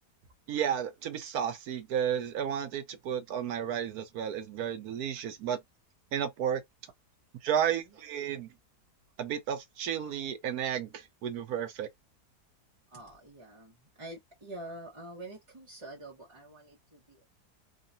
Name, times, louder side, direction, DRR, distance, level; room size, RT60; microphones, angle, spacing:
voice 1, 0.5-5.6 6.1-6.6 7.4-8.5 9.2-11.9, right 9 dB, 70° right, 1.3 m, -32 dB
voice 2, 7.6-7.9 12.9-17.2, right 1 dB, 25° right, 0.8 m, -47 dB
3.8 x 2.2 x 2.6 m
omnidirectional pair, 1.7 m